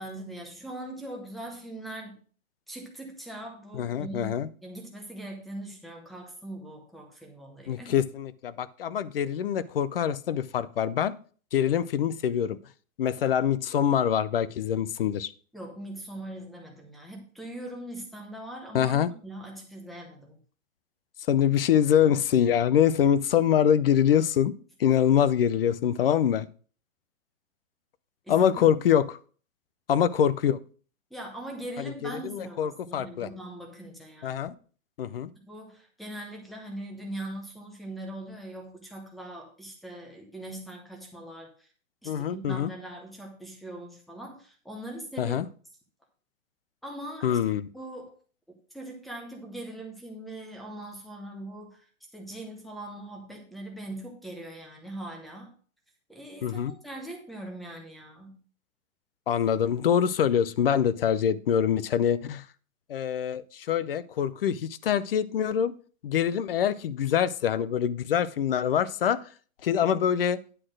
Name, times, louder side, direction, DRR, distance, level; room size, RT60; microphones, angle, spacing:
voice 1, 0.0-2.2 2.7-7.9 15.5-20.4 24.8-24.9 28.3-28.6 31.1-34.6 35.5-41.7 42.0-45.4 46.8-47.4 47.7-48.1 48.7-51.8 52.1-55.5 56.1-58.4, right 1 dB, ahead, 1 dB, 0.7 m, -41 dB
voice 2, 3.7-4.5 7.7-11.1 11.5-12.6 13.0-15.3 18.7-19.1 21.3-24.5 24.8-26.5 28.3-29.2 29.9-30.6 31.8-33.3 34.2-34.5 35.0-35.3 42.1-42.7 45.2-45.5 47.2-47.7 56.4-56.7 59.3-62.4 62.9-65.7 66.0-69.2 69.6-70.4, left 9 dB, 45° left, 17 dB, 0.5 m, -24 dB
10.0 x 4.1 x 6.2 m, 0.41 s
hypercardioid pair, 160°, 41 cm